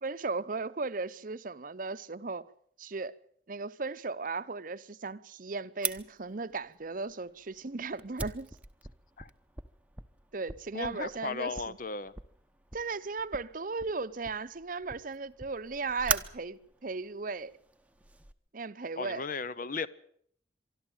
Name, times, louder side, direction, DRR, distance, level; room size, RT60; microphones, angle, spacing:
voice 1, 0.0-2.4 2.8-3.1 3.5-8.5 10.3-11.8 12.7-17.5 18.5-19.2, right 4 dB, 50° right, 0.8 m, -36 dB
Fire, 5.8-18.3, right 3 dB, 10° right, 0.9 m, -41 dB
voice 2, 10.7-12.1 19.0-19.9, left 4 dB, 50° left, 0.8 m, -36 dB
24.0 x 12.5 x 8.9 m
head